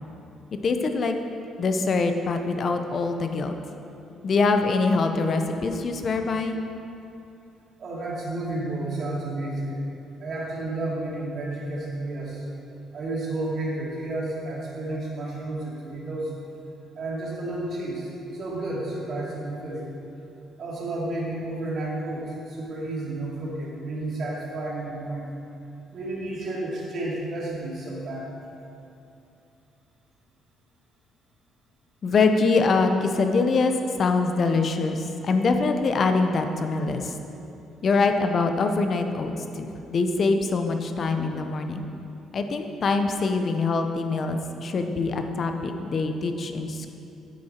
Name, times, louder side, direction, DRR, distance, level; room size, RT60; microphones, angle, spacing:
voice 1, 0.6-1.2 1.6-3.6 4.2-6.6 32.0-33.7 34.0-37.1 37.8-41.9 42.3-46.9, left 3 dB, 45° left, 6 dB, 0.7 m, -24 dB
voice 2, 7.8-9.9 10.2-12.4 12.9-16.3 16.9-19.9 20.6-25.3 25.9-28.3, right 2 dB, 50° right, -5 dB, 2.4 m, -31 dB
9.6 x 7.8 x 4.4 m, 2.8 s
cardioid pair, 125°, 0 cm